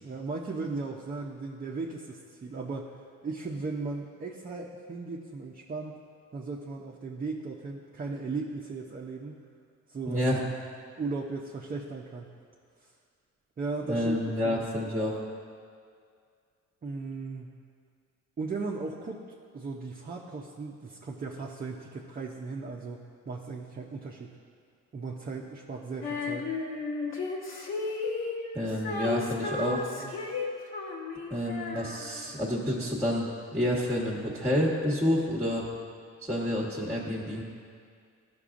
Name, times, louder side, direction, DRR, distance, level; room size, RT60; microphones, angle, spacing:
voice 1, 0.0-6.0 6.3-9.4 9.9-10.3 11.0-12.3 13.6-14.2 14.4-14.6 16.8-17.6 18.4-19.2 19.5-24.4 24.9-26.5 30.0-30.4, right 3 dB, 30° right, -1 dB, 0.7 m, -37 dB
voice 2, 10.1-10.4 13.9-15.2 28.5-29.9 31.3-35.7 36.2-37.4, left 1 dB, 5° right, -4 dB, 1.2 m, -29 dB
Female singing, 26.0-32.5, left 4 dB, 40° left, 1.3 m, -34 dB
13.0 x 6.0 x 2.5 m, 2.2 s
cardioid pair, 90°, 30 cm